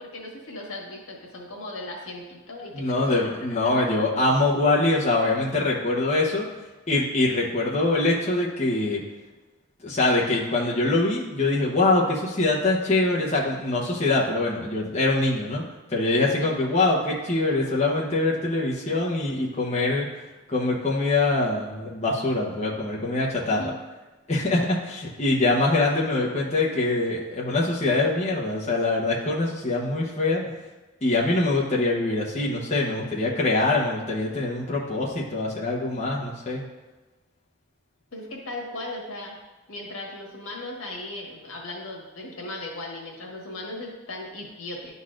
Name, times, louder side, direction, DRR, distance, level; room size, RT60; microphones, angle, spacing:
voice 1, 0.0-3.2 3.6-3.7 16.4-16.5 23.6-23.7 38.1-39.4 39.7-44.9, left 2 dB, 85° left, -1 dB, 1.5 m, -37 dB
voice 2, 2.7-6.5 6.9-9.0 9.8-15.6 15.9-20.1 20.5-23.7 24.3-30.5 31.0-36.6, left 2 dB, 30° left, -5 dB, 0.9 m, -24 dB
11.0 x 4.0 x 2.5 m, 1.2 s
head